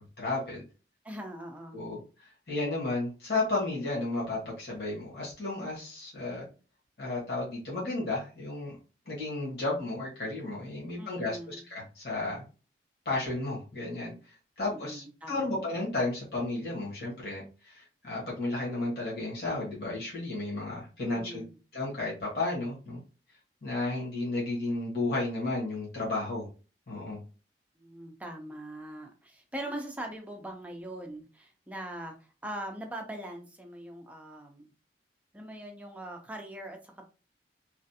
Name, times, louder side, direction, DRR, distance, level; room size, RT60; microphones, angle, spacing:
voice 1, 0.2-0.6 1.7-6.5 7.0-8.8 9.0-12.4 13.0-21.4 21.7-23.0 23.6-26.5 26.9-27.2, left 2 dB, 60° left, 1.5 m, -33 dB
voice 2, 1.0-1.8 11.0-11.6 14.7-15.6 21.0-21.6 27.8-32.2 32.4-34.7 35.3-37.1, right 1 dB, 10° right, 0.4 m, -41 dB
3.2 x 2.4 x 2.7 m
head